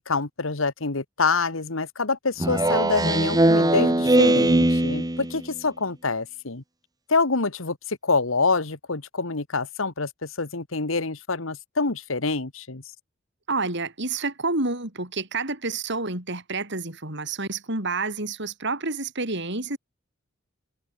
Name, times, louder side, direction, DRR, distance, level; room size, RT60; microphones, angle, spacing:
voice 1, 0.1-6.6 7.1-12.8, left 4 dB, 90° left, 1.8 m, -26 dB
Speech synthesizer, 2.4-5.4, right 1 dB, 20° right, 1.5 m, -20 dB
voice 2, 13.5-19.8, right 3 dB, 60° right, 6.8 m, -29 dB
head